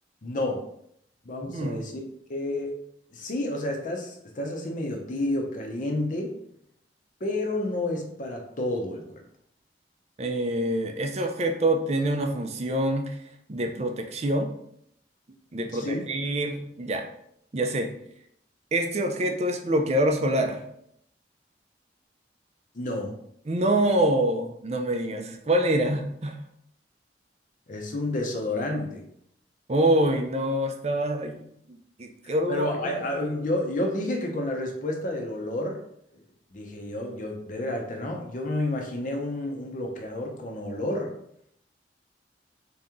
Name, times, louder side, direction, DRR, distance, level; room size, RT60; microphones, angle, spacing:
voice 1, 0.2-0.6 1.2-2.0 2.3-2.8 3.1-6.3 7.2-9.2 15.7-16.0 22.7-23.2 27.7-29.1 32.2-35.8 36.5-41.1, left 1 dB, 45° left, 2 dB, 0.7 m, -30 dB
voice 2, 1.4-1.8 10.2-13.2 13.5-14.5 15.5-17.0 17.5-17.9 18.7-20.6 23.5-26.4 29.7-31.4 31.7-33.1, right 1 dB, 35° right, 4 dB, 0.5 m, -26 dB
3.9 x 2.9 x 3.6 m, 0.72 s
head